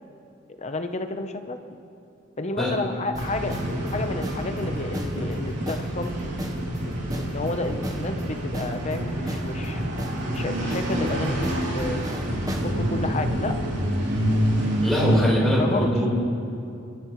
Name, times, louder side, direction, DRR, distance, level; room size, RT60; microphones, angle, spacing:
voice 1, 0.6-1.6 2.4-3.6 3.9-6.1 7.2-9.8 10.3-12.0 12.6-13.5 15.6-16.1, left 2 dB, 35° left, 7 dB, 0.8 m, -31 dB
sound 1, 3.1-12.7, equal, 20° right, 1.1 m, -38 dB
sound 2, 3.2-15.2, equal, 60° right, 3.2 m, -27 dB
voice 2, 14.8-16.1, equal, ahead, -6 dB, 4.1 m, -22 dB
30.0 x 13.0 x 3.1 m, 2.6 s
head